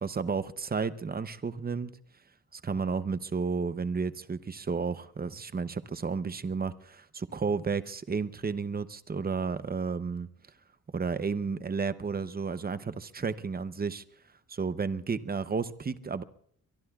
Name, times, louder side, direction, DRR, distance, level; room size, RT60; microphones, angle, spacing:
voice 1, 0.0-1.9 2.5-10.3 10.9-14.0 14.5-16.2, right 5 dB, 25° right, 13 dB, 0.7 m, -32 dB
23.5 x 23.0 x 2.4 m, 0.67 s
wide cardioid pair, 140°, 35 cm